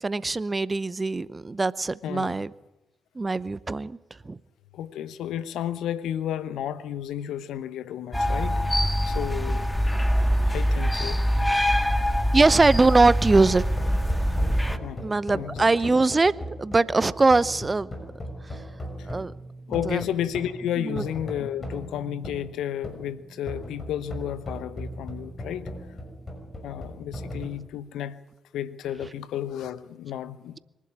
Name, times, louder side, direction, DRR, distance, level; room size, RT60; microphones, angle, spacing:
voice 1, 0.0-2.5 3.2-4.0 4.3-4.4 12.3-13.6 15.0-16.3 16.6-17.9 19.0-19.3 19.9-20.0 20.8-21.0, right 3 dB, 30° right, 0.8 m, -22 dB
voice 2, 2.0-2.4 4.7-9.7 10.5-11.2 14.8-15.1 15.3-15.7 19.0-19.2 19.7-25.7 26.6-28.2 28.5-30.6, left 10 dB, 70° left, 0.9 m, -32 dB
sound 1, 8.1-14.8, equal, 10° left, 1.7 m, -24 dB
sound 2, 13.4-27.5, equal, 35° left, 6.2 m, -38 dB
24.0 x 11.5 x 9.8 m
hypercardioid pair, 40°, 0 cm